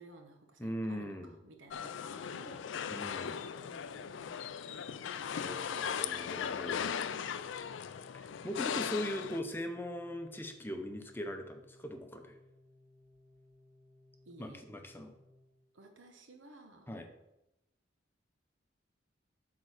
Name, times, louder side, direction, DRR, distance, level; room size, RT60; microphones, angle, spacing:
voice 1, 0.0-2.6 3.6-5.6 14.2-14.6 15.7-16.9, right 2 dB, 85° right, 4 dB, 1.1 m, -56 dB
voice 2, 0.6-1.3 2.9-3.4 5.4-7.2 8.1-12.4 14.4-15.2 16.9-17.1, equal, 10° left, 5 dB, 0.7 m, -40 dB
sound 1, 1.7-9.4, left 7 dB, 75° left, 0.4 m, -38 dB
Organ, 5.2-16.1, left 1 dB, 10° right, 1.6 m, -63 dB
8.6 x 3.8 x 6.4 m, 0.92 s
head